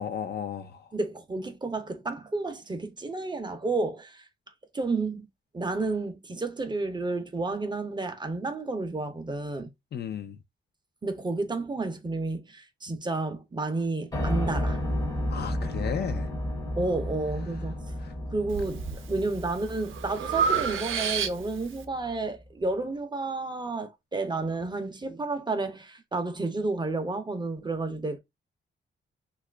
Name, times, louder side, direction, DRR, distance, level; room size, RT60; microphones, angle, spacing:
voice 1, 0.0-0.9 9.9-10.4 15.3-16.3 18.0-18.1, left 8 dB, 50° left, 0.4 m, -34 dB
voice 2, 0.9-4.2 4.7-5.3 5.5-9.7 11.0-14.8 16.8-17.8 18.3-28.2, right 3 dB, 20° right, 0.5 m, -31 dB
Piano, 14.1-22.1, left 1 dB, 20° left, 0.7 m, -32 dB
Breathing, 18.5-19.0 19.5-21.7, right 7 dB, 70° right, 0.5 m, -29 dB
2.8 x 2.4 x 3.2 m
cardioid pair, 115°, 21 cm